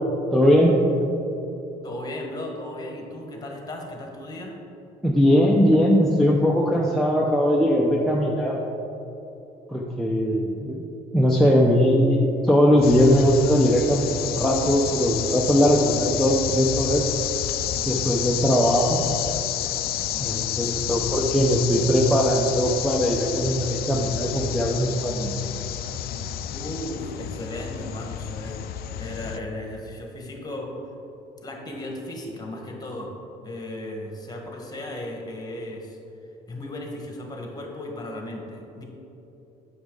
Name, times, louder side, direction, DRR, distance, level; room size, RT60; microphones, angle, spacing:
voice 1, 0.3-0.8 1.0-1.1 5.0-8.6 9.7-10.8 11.1-17.1 17.9-19.0 20.2-25.4, equal, ahead, -3 dB, 0.6 m, -20 dB
voice 2, 1.8-4.6 17.8-18.0 20.1-20.8 26.5-30.8 31.4-33.1 33.4-36.0 36.5-38.8, left 1 dB, 20° left, 1 dB, 1.4 m, -36 dB
sound 1, 12.8-29.4, left 11 dB, 65° left, 0.4 m, -30 dB
8.4 x 6.4 x 3.9 m, 2.9 s
cardioid pair, 110°, 17 cm